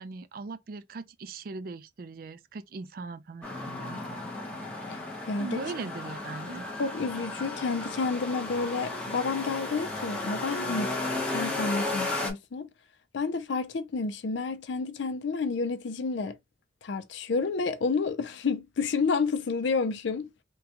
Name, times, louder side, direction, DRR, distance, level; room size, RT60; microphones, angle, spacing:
voice 1, 0.0-3.5 3.7-4.0 5.4-6.7, right 4 dB, 50° right, 0.3 m, -39 dB
sound 1, 3.4-12.3, left 2 dB, 5° left, 0.8 m, -34 dB
voice 2, 5.3-5.6 6.8-10.9 11.3-12.7 13.1-16.4 16.8-20.3, left 4 dB, 70° left, 0.5 m, -30 dB
3.7 x 2.3 x 2.8 m
head